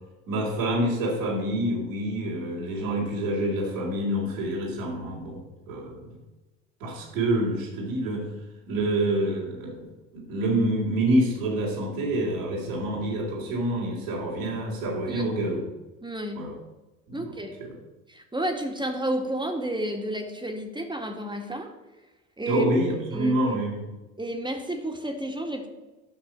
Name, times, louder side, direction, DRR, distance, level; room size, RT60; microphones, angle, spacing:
voice 1, 0.3-5.4 5.7-6.0 6.8-8.3 8.7-9.9 10.1-15.6 16.4-16.5 17.1-17.3 17.6-17.8 22.5-23.9, right 1 dB, 80° right, -5 dB, 3.8 m, -27 dB
voice 2, 16.0-16.4 17.1-17.5 18.1-21.7 22.4-22.7 23.1-23.6 24.2-25.7, right 1 dB, 10° right, 3 dB, 2.1 m, -31 dB
11.5 x 5.9 x 7.5 m, 1.1 s
hypercardioid pair, 65°, 38 cm